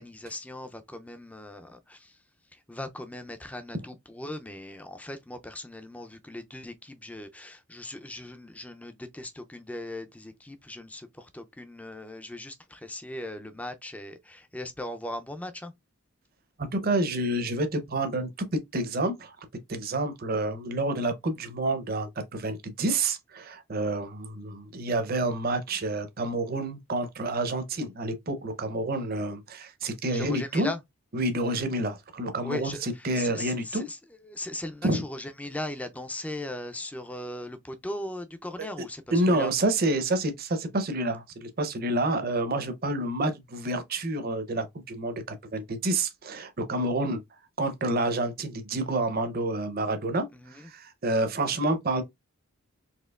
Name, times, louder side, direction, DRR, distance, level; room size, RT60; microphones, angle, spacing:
voice 1, 0.0-15.7 30.1-30.8 32.4-39.5 50.3-50.7, left 1 dB, 5° left, 0.4 m, -39 dB
voice 2, 16.6-30.7 31.1-33.9 34.8-35.0 39.1-52.0, right 2 dB, 45° right, 0.6 m, -29 dB
4.3 x 2.8 x 2.3 m
head